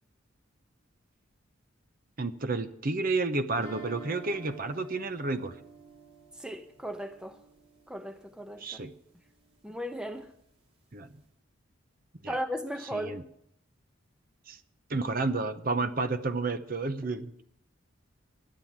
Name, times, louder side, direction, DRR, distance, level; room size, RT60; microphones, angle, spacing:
voice 1, 2.2-5.5 8.6-8.9 10.9-11.1 12.2-12.4 12.9-13.2 14.5-14.6 14.9-17.3, right 3 dB, 45° right, 0.8 m, -31 dB
sound 1, 3.5-8.4, right 3 dB, 30° right, 2.4 m, -49 dB
voice 2, 6.4-7.4 7.9-8.8 9.6-10.3 12.3-13.1, equal, 5° right, 0.7 m, -36 dB
12.0 x 9.7 x 7.3 m
head